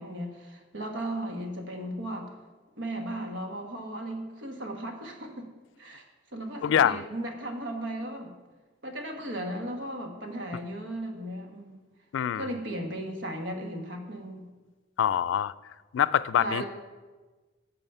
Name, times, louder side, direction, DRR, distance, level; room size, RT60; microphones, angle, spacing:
voice 1, 0.0-2.3 2.8-5.5 5.8-6.0 6.3-8.3 8.8-11.7 12.3-14.5 16.4-16.6, right 1 dB, 70° right, 3 dB, 1.3 m, -36 dB
voice 2, 6.6-7.0 12.1-12.5 15.0-15.5 15.9-16.6, left 9 dB, 90° left, 16 dB, 0.3 m, -24 dB
8.8 x 6.3 x 5.5 m, 1.3 s
head